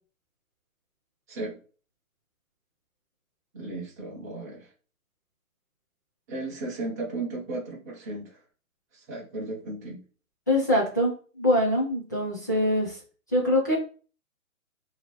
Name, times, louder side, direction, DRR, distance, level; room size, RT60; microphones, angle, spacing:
voice 1, 3.5-4.7 6.3-8.4 8.9-10.0, right 2 dB, 10° right, -5 dB, 0.8 m, -35 dB
voice 2, 10.5-13.0 13.3-13.8, left 1 dB, 15° left, -5 dB, 0.6 m, -24 dB
4.7 x 3.0 x 3.1 m, 0.38 s
hypercardioid pair, 165°, 43 cm